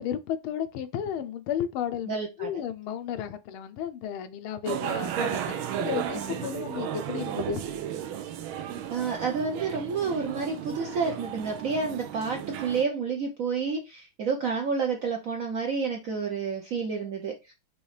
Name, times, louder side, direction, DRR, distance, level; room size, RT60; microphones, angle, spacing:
voice 1, 0.0-7.6, left 9 dB, 85° left, 1.5 m, -33 dB
voice 2, 2.1-2.5 6.1-6.5 8.9-17.5, right 5 dB, 70° right, 0.8 m, -30 dB
sound 1, 4.7-12.8, right 10 dB, 90° right, 1.5 m, -34 dB
5.4 x 3.0 x 3.2 m
omnidirectional pair, 2.3 m